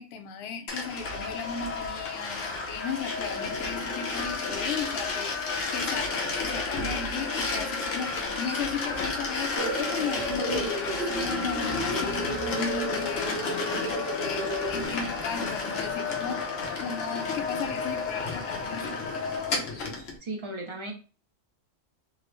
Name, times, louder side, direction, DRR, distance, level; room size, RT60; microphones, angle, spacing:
voice 1, 0.0-16.4 16.8-19.1, left 6 dB, 65° left, 7 dB, 0.8 m, -36 dB
sound 1, 0.7-20.2, left 4 dB, 90° left, 1.2 m, -31 dB
sound 2, 9.6-14.9, right 2 dB, 65° right, 1.2 m, -34 dB
voice 2, 20.2-20.9, right 2 dB, 35° right, 1 dB, 0.5 m, -35 dB
3.7 x 2.0 x 3.1 m, 0.37 s
omnidirectional pair, 1.3 m